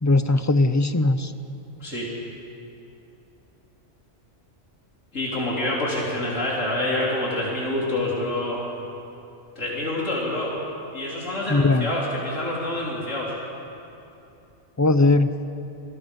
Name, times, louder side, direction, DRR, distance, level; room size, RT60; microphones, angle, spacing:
voice 1, 0.0-1.3 11.5-11.9 14.8-15.3, left 2 dB, 20° left, 10 dB, 0.5 m, -19 dB
voice 2, 5.1-8.6 9.6-10.5 10.9-13.3, left 1 dB, 80° left, -5 dB, 4.2 m, -27 dB
28.0 x 20.5 x 5.4 m, 2.7 s
omnidirectional pair, 1.3 m